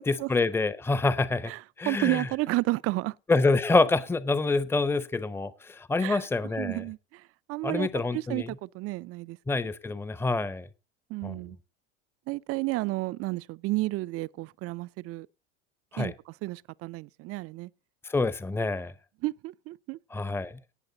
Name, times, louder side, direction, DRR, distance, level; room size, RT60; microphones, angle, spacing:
voice 1, 0.1-1.5 1.8-2.3 3.3-6.8 7.6-8.5 9.5-10.7 11.2-11.4 15.9-16.1 18.0-18.9 20.1-20.5, left 3 dB, 5° left, 0.7 m, -26 dB
voice 2, 1.5-3.2 6.0-6.2 6.6-7.2 7.5-9.4 11.1-11.6 12.3-15.3 16.0-17.7 19.2-20.0, right 21 dB, 45° right, 0.5 m, -31 dB
18.0 x 6.6 x 3.9 m
supercardioid pair, 105°, 34 cm